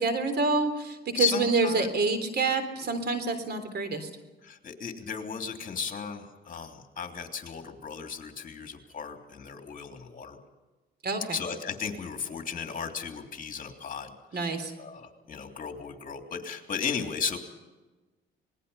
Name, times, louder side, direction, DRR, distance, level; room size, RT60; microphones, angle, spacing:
voice 1, 0.0-4.1 11.0-11.4 14.3-14.7, right 3 dB, 55° right, 9 dB, 3.7 m, -27 dB
voice 2, 1.1-1.9 4.4-10.4 11.3-17.4, left 6 dB, 40° left, 4 dB, 3.2 m, -35 dB
26.5 x 20.0 x 5.7 m, 1.2 s
cardioid pair, 90°, 20 cm